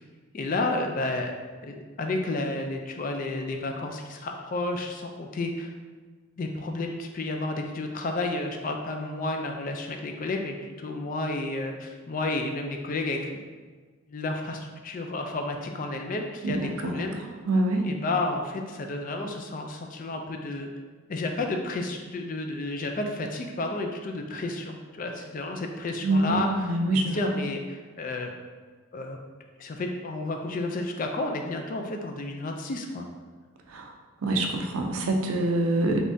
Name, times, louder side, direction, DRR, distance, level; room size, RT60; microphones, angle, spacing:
voice 1, 0.3-1.3 1.6-5.7 6.4-13.4 14.1-17.2 17.8-20.7 21.1-28.3 28.9-29.2 29.6-33.1, left 2 dB, 40° left, 3 dB, 0.3 m, -31 dB
voice 2, 16.4-17.0 17.5-17.8 26.0-27.2 33.7-33.8 34.2-36.0, right 2 dB, 85° right, 3 dB, 0.5 m, -25 dB
3.5 x 3.3 x 2.6 m, 1.4 s
head